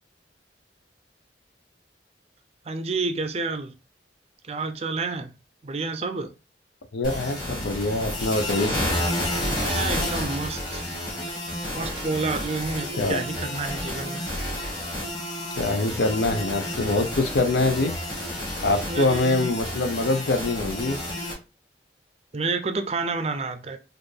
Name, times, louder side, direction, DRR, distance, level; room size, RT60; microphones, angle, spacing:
voice 1, 2.7-3.7 4.4-5.3 5.6-6.3 9.6-10.9 11.7-14.2 18.8-19.3 22.3-23.8, right 3 dB, 35° right, 0.4 m, -29 dB
voice 2, 6.9-8.7 13.0-13.2 15.6-18.0 18.6-21.0, left 2 dB, 90° left, 0.6 m, -24 dB
sound 1, 7.0-21.3, left 1 dB, 25° left, 1.6 m, -30 dB
4.2 x 2.5 x 3.2 m
head